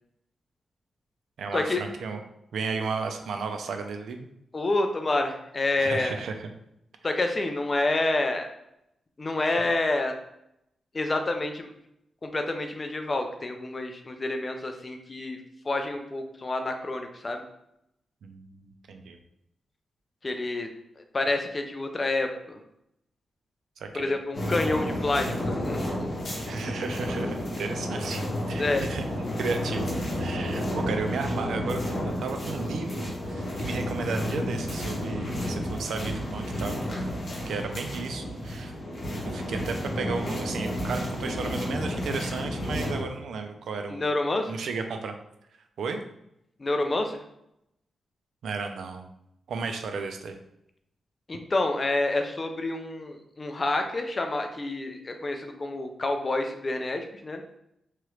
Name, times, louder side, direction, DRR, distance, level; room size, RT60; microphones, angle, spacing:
voice 1, 1.4-2.2 2.5-4.3 5.8-6.5 18.2-19.2 23.8-24.2 26.5-28.2 28.5-29.0 29.4-29.9 30.2-36.7 37.4-38.7 39.2-44.1 44.5-45.1 45.8-46.0 48.4-49.1 49.5-50.4, right 4 dB, 75° right, 6 dB, 0.4 m, -34 dB
voice 2, 4.5-6.2 7.0-8.5 9.2-10.1 10.9-11.7 12.2-15.4 15.7-17.5 20.2-20.7 21.1-22.6 23.9-26.1 28.6-28.8 43.9-44.6 46.6-47.2 51.3-57.4, left 2 dB, 25° left, 5 dB, 0.3 m, -28 dB
sound 1, 24.3-43.0, left 1 dB, 40° left, 0.8 m, -31 dB
2.9 x 2.4 x 3.0 m, 0.80 s
wide cardioid pair, 175°, 0 cm